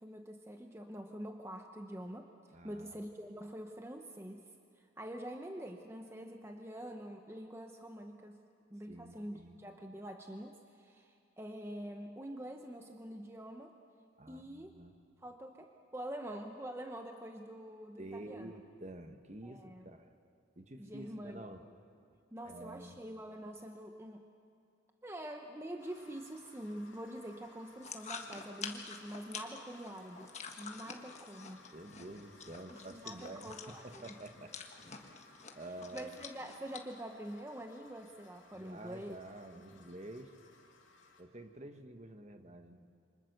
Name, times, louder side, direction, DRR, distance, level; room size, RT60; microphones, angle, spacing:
voice 1, 0.0-4.5 4.8-13.7 14.3-14.8 15.2-18.5 19.4-19.9 20.8-21.5 22.3-24.3 25.0-30.3 30.6-31.7 32.7-34.2 35.9-39.2, right 1 dB, 15° right, 4 dB, 0.9 m, -46 dB
voice 2, 2.5-3.0 8.9-9.6 14.2-14.9 18.0-20.1 20.6-21.6 22.4-22.9 31.7-33.5 33.8-34.5 35.5-36.1 38.6-40.3 41.2-42.9, right 1 dB, 35° right, 7 dB, 1.2 m, -49 dB
sound 1, 25.8-41.2, left 3 dB, 70° left, 2.7 m, -61 dB
sound 2, 27.8-36.8, left 5 dB, 35° left, 1.5 m, -48 dB
28.0 x 25.0 x 6.6 m, 2.4 s
head